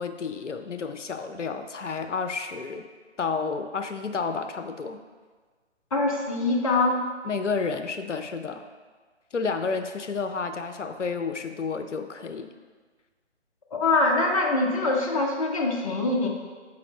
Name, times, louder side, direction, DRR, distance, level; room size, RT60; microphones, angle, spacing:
voice 1, 0.0-2.9 3.2-5.0 7.2-8.6 9.3-12.5, left 4 dB, 80° left, 7 dB, 0.6 m, -31 dB
voice 2, 5.9-7.0 13.7-16.3, left 2 dB, 30° left, 0 dB, 0.7 m, -23 dB
6.8 x 4.8 x 4.0 m, 1.5 s
figure-of-eight pair, 140°, 35 cm